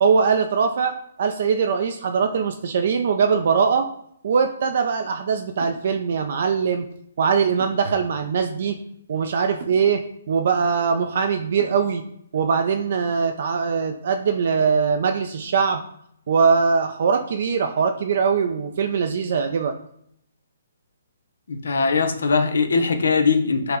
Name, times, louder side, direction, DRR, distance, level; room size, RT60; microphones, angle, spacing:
voice 1, 0.0-3.9 4.2-6.9 7.2-8.8 9.1-12.0 12.3-15.8 16.3-19.7, right 6 dB, 55° right, 6 dB, 0.3 m, -21 dB
sound 1, 5.6-5.9 7.6-8.0 9.6-9.9 11.6-12.0, right 3 dB, 40° right, 0.7 m, -39 dB
voice 2, 21.5-23.8, left 4 dB, 80° left, 7 dB, 0.6 m, -20 dB
5.6 x 2.1 x 3.7 m, 0.71 s
hypercardioid pair, 160°, 0 cm